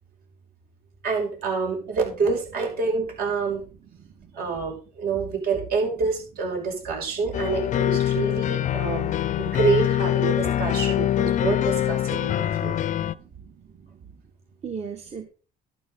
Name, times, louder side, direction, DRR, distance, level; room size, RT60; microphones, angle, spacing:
voice 1, 1.0-3.6 4.3-9.1 9.4-12.8, right 5 dB, 65° right, 1 dB, 6.1 m, -27 dB
sound 1, 7.3-13.1, left 11 dB, 45° left, 0.5 m, -24 dB
voice 2, 8.6-9.0 12.4-12.5 13.2-13.9 14.6-15.2, right 6 dB, 40° right, 5 dB, 1.4 m, -38 dB
12.0 x 9.3 x 3.8 m, 0.37 s
cardioid pair, 110°, 17 cm